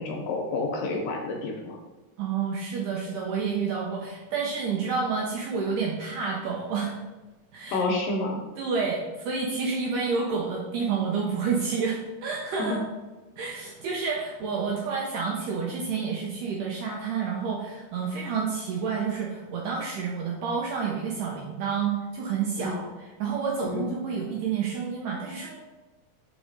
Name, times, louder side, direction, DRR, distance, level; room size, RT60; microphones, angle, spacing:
voice 1, 0.0-1.8 7.7-8.4 12.6-12.8 22.6-22.8 23.6-23.9, left 3 dB, 75° left, 1 dB, 2.1 m, -29 dB
voice 2, 2.2-7.0 7.5-7.8 8.6-12.8 13.4-22.9 23.2-25.6, right 5 dB, 80° right, -2 dB, 1.9 m, -29 dB
5.3 x 4.9 x 3.9 m, 1.2 s
omnidirectional pair, 4.4 m